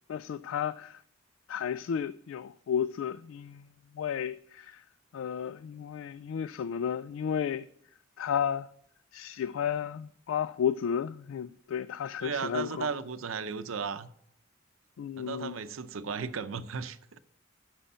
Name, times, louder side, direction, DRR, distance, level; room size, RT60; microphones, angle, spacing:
voice 1, 0.1-0.9 1.5-3.6 4.0-4.3 5.1-7.6 8.2-8.7 9.1-12.9 15.0-15.5, left 8 dB, 75° left, 0.3 m, -32 dB
voice 2, 12.2-14.1 15.2-17.2, right 5 dB, 85° right, 0.7 m, -35 dB
8.4 x 6.3 x 8.0 m
head